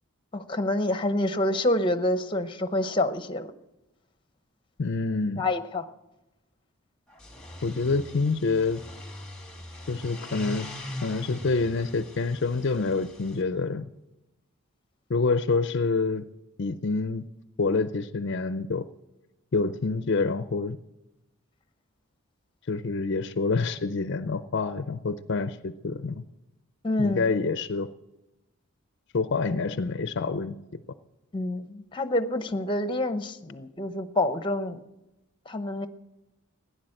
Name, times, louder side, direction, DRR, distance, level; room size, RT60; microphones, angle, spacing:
voice 1, 0.3-3.5 5.4-5.9 26.8-27.3 31.3-34.8 35.5-35.9, left 1 dB, 20° left, 11 dB, 0.8 m, -27 dB
voice 2, 4.8-5.4 7.6-8.8 9.9-10.7 11.0-13.9 15.1-16.3 16.6-17.2 17.6-18.8 19.5-20.8 22.7-26.2 27.0-27.9 29.1-30.8, left 4 dB, 50° left, 13 dB, 0.5 m, -27 dB
sound 1, 7.1-13.4, left 1 dB, 5° left, 1.5 m, -41 dB
16.0 x 10.5 x 7.8 m, 0.98 s
head